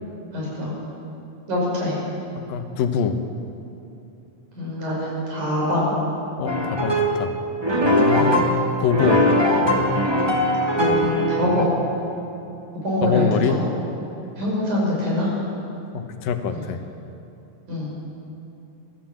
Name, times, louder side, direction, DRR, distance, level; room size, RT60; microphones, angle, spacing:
voice 1, 0.3-0.7 1.5-2.0 4.6-6.0 8.1-8.3 10.8-11.7 12.7-13.6 14.4-15.3 16.5-16.7 17.7-17.9, left 1 dB, 60° right, -4 dB, 7.2 m, -24 dB
voice 2, 2.5-3.2 6.4-7.4 7.8-8.5 8.8-9.3 13.0-13.6 15.9-16.8, left 7 dB, 80° left, 7 dB, 2.9 m, -24 dB
sound 1, 6.5-7.2 7.6-11.6, equal, 25° right, 0.5 m, -20 dB
23.0 x 15.5 x 7.4 m, 2.8 s
omnidirectional pair, 4.0 m